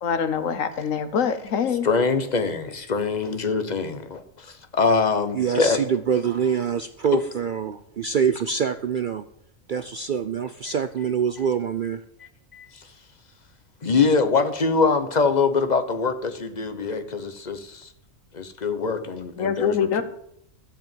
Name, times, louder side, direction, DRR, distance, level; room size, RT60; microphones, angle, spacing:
voice 1, 0.0-1.9 19.4-20.0, left 7 dB, 80° left, 1.4 m, -24 dB
voice 2, 1.8-5.8 7.1-7.2 12.5-12.6 13.8-17.9 18.3-20.0, left 4 dB, 35° left, 1.1 m, -23 dB
voice 3, 5.3-9.3 9.7-12.0, right 7 dB, 60° right, 0.5 m, -25 dB
14.0 x 5.1 x 9.1 m
omnidirectional pair, 1.4 m